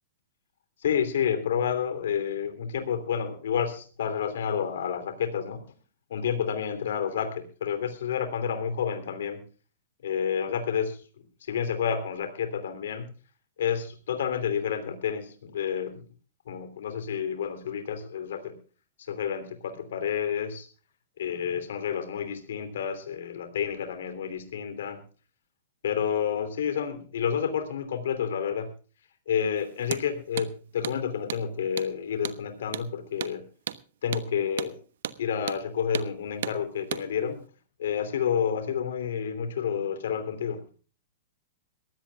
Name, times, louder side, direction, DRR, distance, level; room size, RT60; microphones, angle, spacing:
voice 1, 0.8-5.7 6.1-9.4 10.0-13.1 13.6-16.1 16.5-18.6 19.0-20.7 21.2-25.0 25.8-28.7 29.3-33.5 34.0-34.8 35.2-37.5 37.8-40.6, left 8 dB, 75° left, 9 dB, 3.0 m, -30 dB
Hammer, 29.8-30.1 30.4-30.5 30.8-31.0 31.3-31.4 31.8-31.9 32.2-32.4 32.7-32.9 33.2-33.4 33.7-33.8 34.1-34.3 34.6-34.7 35.0-35.2 35.5-35.6 35.9-36.1 36.4-36.6 36.9-37.1, right 10 dB, 70° right, 1.0 m, -34 dB
22.0 x 16.0 x 2.3 m, 0.37 s
hypercardioid pair, 120°, 0 cm